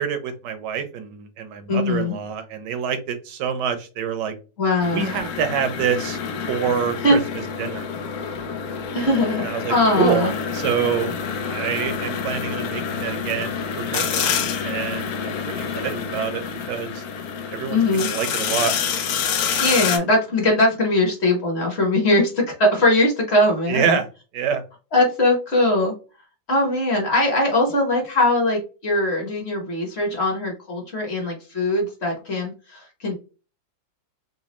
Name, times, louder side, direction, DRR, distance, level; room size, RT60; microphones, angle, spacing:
voice 1, 0.0-4.3 4.9-6.2 6.5-7.2 7.6-7.8 9.4-11.1 11.5-14.3 14.6-17.0 17.5-18.7 23.7-24.1 24.3-24.6, right 7 dB, 75° right, 8 dB, 1.3 m, -26 dB
voice 2, 1.7-2.2 4.6-5.1 7.0-7.2 8.9-10.4 17.7-18.1 19.6-24.0 24.9-25.9 26.5-33.2, left 2 dB, 45° left, 1 dB, 1.1 m, -21 dB
sound 1, 4.8-20.0, left 6 dB, 70° left, 1.0 m, -27 dB
4.1 x 2.2 x 2.9 m, 0.32 s
omnidirectional pair, 1.9 m